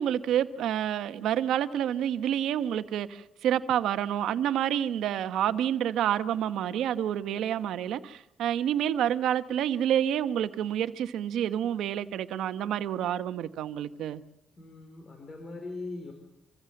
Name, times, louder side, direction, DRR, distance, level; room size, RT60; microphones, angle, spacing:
voice 1, 0.0-14.2, right 10 dB, 80° right, 1.1 m, -28 dB
voice 2, 14.6-16.1, left 3 dB, 35° left, 5.1 m, -40 dB
26.0 x 15.5 x 7.8 m
cardioid pair, 90°, 0 cm